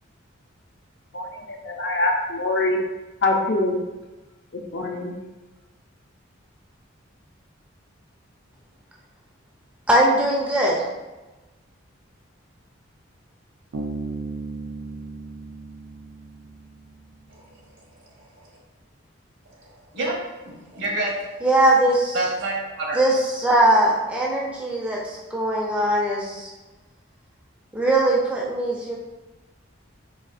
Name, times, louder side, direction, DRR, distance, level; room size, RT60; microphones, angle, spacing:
voice 1, 1.1-2.8 3.2-3.8 4.7-5.1, left 2 dB, 55° left, 2 dB, 0.5 m, -24 dB
voice 2, 9.9-10.7 21.4-22.2 22.9-26.5 27.7-29.0, right 1 dB, 5° right, -4 dB, 0.4 m, -20 dB
Bass guitar, 13.7-17.2, right 3 dB, 85° right, 0.5 m, -35 dB
voice 3, 19.9-21.3 22.1-23.0, right 2 dB, 65° right, -3 dB, 1.0 m, -27 dB
4.6 x 2.7 x 2.4 m, 1.1 s
head